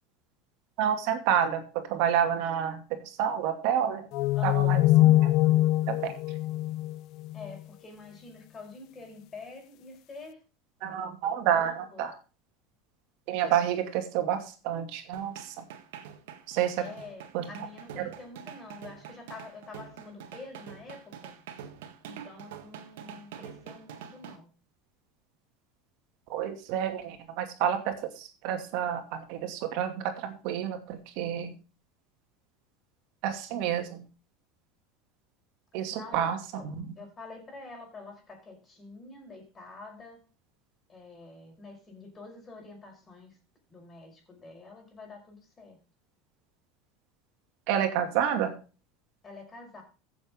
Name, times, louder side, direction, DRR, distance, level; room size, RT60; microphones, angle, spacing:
voice 1, 0.8-4.1 4.4-5.3 5.9-6.1 10.8-12.1 13.3-15.5 16.5-16.9 17.3-17.4 18.0-18.1 26.3-31.5 33.2-34.0 35.7-36.9 47.7-48.5, right 9 dB, 65° right, 6 dB, 2.5 m, -29 dB
sound 1, 4.1-7.6, left 16 dB, 55° left, 0.4 m, -23 dB
voice 2, 4.4-4.7 7.3-10.4 11.5-12.1 16.8-21.4 22.0-24.5 35.9-36.2 36.5-36.6 37.0-40.2 40.9-43.4 43.7-45.8 49.2-49.8, left 3 dB, 20° left, 2 dB, 5.4 m, -47 dB
sound 2, 15.1-24.4, right 8 dB, 85° right, 1.8 m, -45 dB
15.0 x 7.3 x 3.7 m, 0.35 s
supercardioid pair, 130°, 0 cm